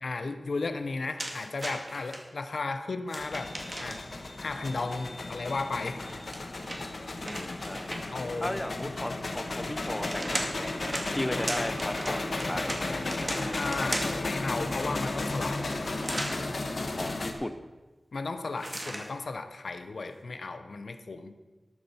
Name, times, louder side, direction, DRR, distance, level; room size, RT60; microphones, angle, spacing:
voice 1, 0.0-4.1 4.4-6.1 8.1-9.1 9.6-9.7 11.2-11.4 13.6-15.6 18.1-21.3, left 3 dB, 85° left, 9 dB, 0.8 m, -35 dB
sound 1, 1.2-2.2 3.1-4.2 6.0-8.3 9.7-14.3 16.0-16.4 18.6-19.1, right 1 dB, 30° right, 2.0 m, -37 dB
sound 2, 3.2-17.3, left 2 dB, 65° left, 1.3 m, -34 dB
voice 2, 7.2-7.9 8.4-10.7 11.1-13.1 17.0-17.6, left 1 dB, 20° left, 9 dB, 0.8 m, -36 dB
13.0 x 12.5 x 4.4 m, 1.2 s
wide cardioid pair, 80°, 0 cm